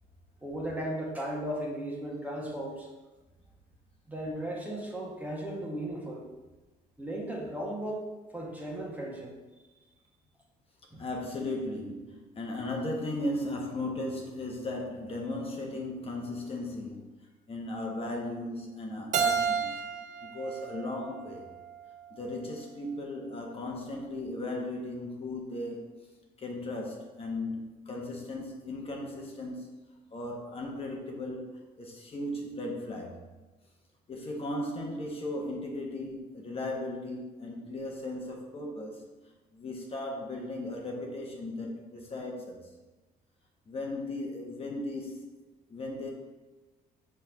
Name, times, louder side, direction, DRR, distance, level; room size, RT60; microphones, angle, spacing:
voice 1, 0.4-2.9 4.1-6.3 7.0-8.1 8.3-9.3 9.6-9.7 10.9-11.1, right 1 dB, 10° right, -2 dB, 1.5 m, -36 dB
voice 2, 11.0-17.1 17.5-19.8 20.2-21.5 22.1-26.1 26.4-29.7 30.1-33.3 34.1-39.0 39.5-42.8 43.7-45.3 45.7-46.1, left 1 dB, 35° left, 0 dB, 1.3 m, -36 dB
Keyboard (musical), 19.1-22.0, right 6 dB, 45° right, 0.7 m, -32 dB
5.9 x 4.5 x 5.7 m, 1.2 s
cardioid pair, 110°, 17 cm